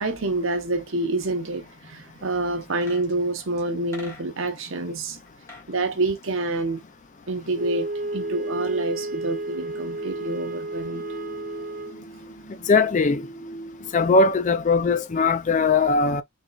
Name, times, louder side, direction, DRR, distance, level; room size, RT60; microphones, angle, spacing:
voice 1, 0.0-5.2 5.7-6.8 7.3-11.0, right 2 dB, 60° right, 0.8 m, -27 dB
sound 1, 2.6-4.6 5.3-5.7 6.0-7.4 7.6-7.7, left 3 dB, 15° left, 1.7 m, -46 dB
Wind instrument woodwind instrument, 7.5-12.0, right 2 dB, 35° right, 0.5 m, -32 dB
sound 2, 8.1-13.9, right 2 dB, 55° left, 1.6 m, -42 dB
voice 2, 12.7-13.3 13.9-16.2, left 4 dB, 35° left, 0.3 m, -20 dB
4.0 x 3.7 x 2.4 m
head